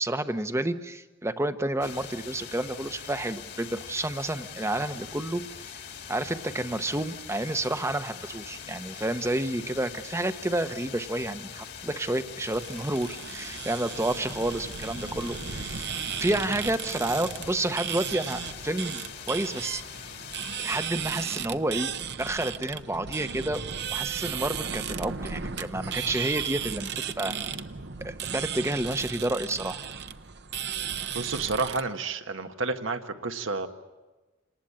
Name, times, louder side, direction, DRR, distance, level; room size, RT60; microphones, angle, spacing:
voice 1, 0.0-5.8 6.1-19.0 19.3-19.8 20.6-21.9 22.2-23.6 23.9-27.4 28.0-29.8, right 1 dB, 15° right, 10 dB, 0.9 m, -30 dB
sound 1, 1.8-20.9, left 7 dB, 55° left, 1.9 m, -43 dB
sound 2, 12.5-31.8, right 7 dB, 55° right, 0.9 m, -35 dB
voice 2, 31.1-33.7, right 3 dB, 80° right, 7 dB, 1.6 m, -30 dB
27.5 x 19.5 x 8.8 m, 1.2 s
head